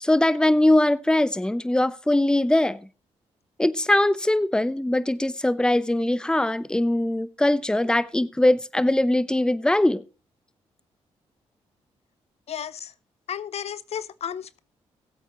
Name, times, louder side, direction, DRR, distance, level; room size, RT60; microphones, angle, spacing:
voice 1, 0.0-2.8 3.6-10.0, left 1 dB, 5° left, 0.7 m, -21 dB
voice 2, 12.5-12.9 13.3-14.6, left 9 dB, 60° left, 0.5 m, -33 dB
19.0 x 8.2 x 3.0 m
supercardioid pair, 55°, 12 cm